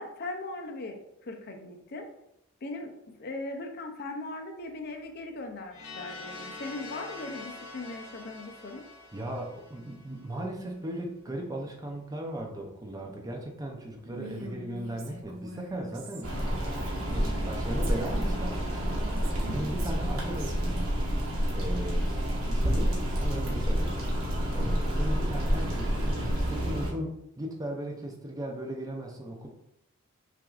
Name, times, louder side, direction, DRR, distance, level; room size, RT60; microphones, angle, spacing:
voice 1, 0.0-2.1 2.6-2.9 3.2-8.8, left 2 dB, 50° left, 4 dB, 0.5 m, -39 dB
sound 1, 5.7-10.6, left 2 dB, 80° left, 0.8 m, -45 dB
voice 2, 9.1-20.9 21.5-24.1 24.5-29.5, right 1 dB, 15° right, 1 dB, 0.5 m, -37 dB
Female speech woman speaking, 14.0-17.5 17.8-20.5, right 1 dB, 65° right, 0.7 m, -44 dB
sound 2, 16.2-26.9, equal, 85° right, 1.2 m, -29 dB
5.9 x 2.5 x 2.4 m, 0.81 s
head